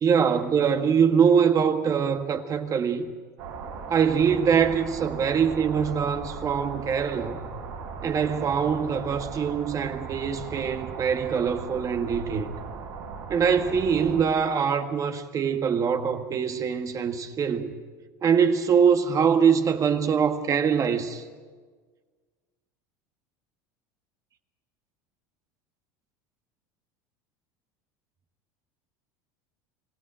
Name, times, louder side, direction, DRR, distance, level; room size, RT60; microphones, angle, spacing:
voice 1, 0.0-3.1 3.9-7.5 8.0-12.6 13.3-17.7 18.2-21.2, right 7 dB, 35° right, 1.7 m, -23 dB
sound 1, 3.4-14.2, right 5 dB, 80° right, 6.4 m, -38 dB
26.0 x 16.0 x 8.8 m
supercardioid pair, 100°, 10 cm